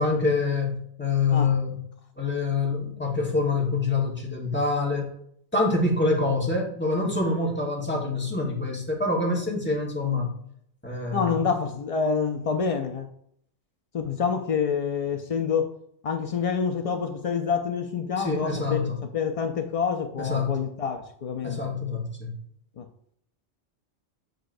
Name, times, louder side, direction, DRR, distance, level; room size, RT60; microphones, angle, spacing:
voice 1, 0.0-1.8 2.2-5.1 5.5-10.3 10.8-11.5 18.2-19.0 20.2-20.6 21.4-22.4, left 3 dB, 10° left, -2 dB, 1.2 m, -26 dB
voice 2, 11.1-13.1 13.9-15.7 16.0-18.8 19.1-21.6 22.8-22.9, left 6 dB, 70° left, 6 dB, 0.3 m, -27 dB
7.8 x 5.5 x 2.6 m, 0.69 s
omnidirectional pair, 1.2 m